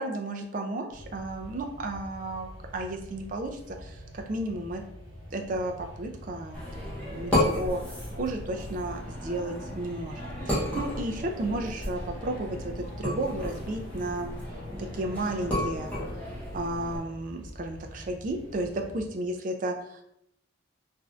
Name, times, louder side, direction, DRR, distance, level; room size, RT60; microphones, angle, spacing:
voice 1, 0.0-4.8 5.3-7.8 8.1-14.3 14.8-15.9 16.2-20.0, right 1 dB, 40° right, 3 dB, 0.4 m, -33 dB
sound 1, 0.9-19.1, equal, 85° right, 0.8 m, -46 dB
sound 2, 6.5-17.0, left 1 dB, 5° left, 0.8 m, -33 dB
3.2 x 2.5 x 2.4 m, 0.76 s
head